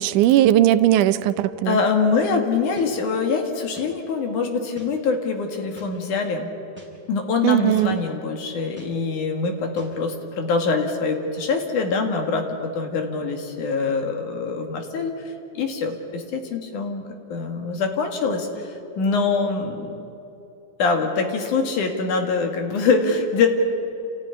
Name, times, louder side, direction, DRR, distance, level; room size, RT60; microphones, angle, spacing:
voice 1, 0.0-1.8 7.4-8.0, right 12 dB, 80° right, 13 dB, 2.2 m, -18 dB
voice 2, 1.7-6.5 7.1-15.2 15.5-17.0 17.3-18.5 19.0-20.0 20.8-23.5, left 4 dB, 75° left, 4 dB, 3.4 m, -24 dB
sound 1, 2.8-2.9 3.8-3.9 4.8-4.9 5.8-5.9 6.8-6.9 7.8-7.9 8.8-8.9 9.8-9.9, right 1 dB, 5° right, 4.0 m, -44 dB
28.5 x 15.0 x 9.8 m, 2.9 s
omnidirectional pair, 3.6 m